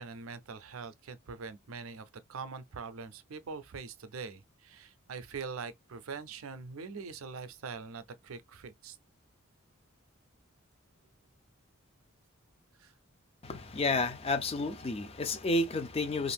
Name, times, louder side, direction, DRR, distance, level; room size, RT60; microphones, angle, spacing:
voice 1, 0.0-9.0 12.8-12.9, right 5 dB, 85° right, 0.5 m, -43 dB
voice 2, 13.4-16.3, left 2 dB, 30° left, 0.4 m, -31 dB
2.5 x 2.5 x 3.4 m
head